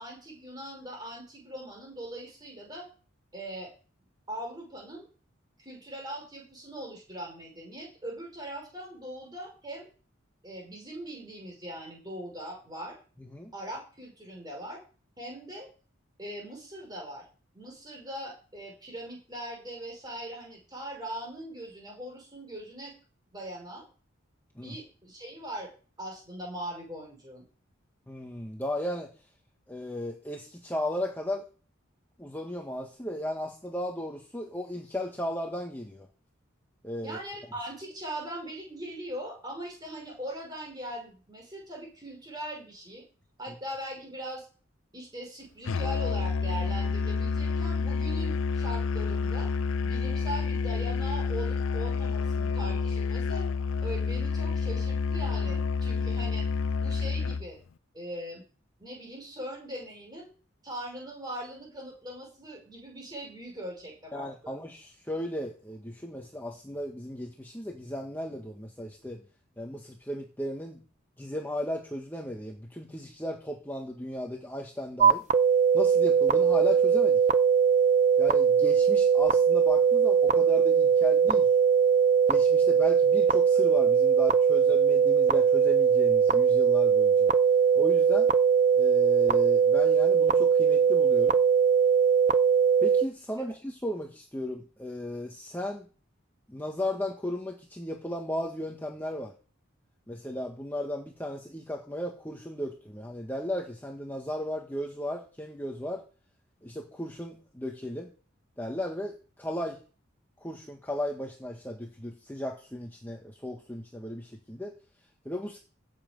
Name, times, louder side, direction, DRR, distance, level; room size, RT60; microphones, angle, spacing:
voice 1, 0.0-2.9 3.3-3.7 4.3-5.1 5.6-9.9 10.4-13.0 13.5-14.8 15.2-15.7 16.2-17.2 17.5-22.9 23.3-23.9 24.6-25.7 26.0-27.5 37.0-43.0 43.4-44.5 44.9-49.5 49.8-53.5 53.8-56.4 56.8-57.6 57.9-58.4 58.8-60.3 60.6-64.6 93.4-93.5, right 1 dB, 20° right, 0 dB, 5.7 m, -40 dB
voice 2, 13.2-13.5 24.6-24.8 28.1-29.1 29.7-31.5 32.2-36.1 36.8-37.2 64.1-69.2 69.6-70.8 71.2-75.2 75.7-77.2 78.2-81.5 82.3-87.3 87.7-88.3 88.7-91.4 92.8-95.9 96.5-99.3 100.1-106.0 106.6-108.1 108.6-109.8 110.4-114.7 115.2-115.6, left 1 dB, 10° left, 0 dB, 1.5 m, -35 dB
Musical instrument, 45.7-57.5, left 5 dB, 80° left, 0.5 m, -29 dB
sound 1, 75.0-93.0, right 7 dB, 35° right, 0.5 m, -21 dB
16.0 x 7.5 x 5.3 m, 0.37 s
head